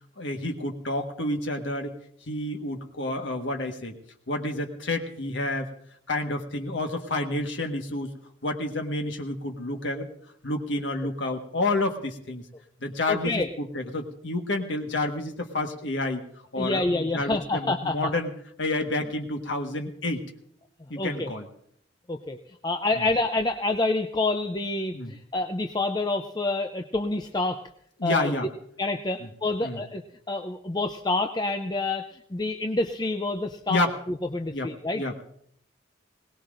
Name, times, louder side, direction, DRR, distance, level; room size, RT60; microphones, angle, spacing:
voice 1, 0.2-1.9 2.3-4.0 4.3-5.7 6.1-8.1 8.4-10.1 10.4-12.4 12.8-16.2 16.5-18.3 18.6-20.2 20.9-21.5 22.9-23.0 24.9-25.1 28.0-28.5 29.6-29.8 33.7-33.9 34.5-35.2, left 2 dB, 85° left, 4 dB, 1.5 m, -29 dB
voice 2, 13.1-13.5 16.6-18.1 21.0-21.3 22.1-22.4 22.6-27.6 28.0-28.3 28.8-30.0 30.3-35.0, left 2 dB, 20° left, 6 dB, 0.5 m, -28 dB
21.0 x 18.5 x 2.6 m, 0.69 s
head